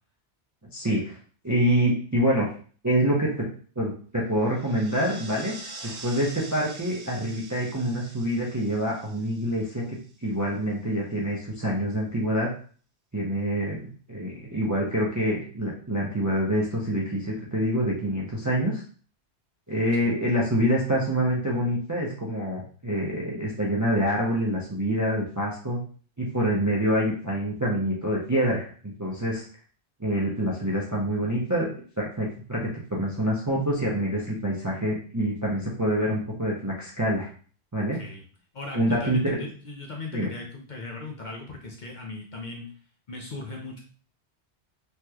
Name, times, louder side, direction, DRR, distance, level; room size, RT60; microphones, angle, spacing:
voice 1, 0.7-1.1 1.4-2.5 2.8-3.3 3.8-5.5 5.8-9.8 10.2-12.5 13.1-18.8 19.7-25.8 26.2-29.4 30.0-31.7 32.0-37.3 37.7-38.0 38.7-39.4 40.1-40.3, equal, 25° right, -3 dB, 0.4 m, -26 dB
sound 1, 4.4-10.3, right 2 dB, 80° right, 1.0 m, -45 dB
voice 2, 37.9-38.2 38.5-42.7 43.1-43.8, left 3 dB, 50° left, 0 dB, 0.7 m, -38 dB
3.3 x 2.9 x 2.3 m, 0.42 s
omnidirectional pair, 1.2 m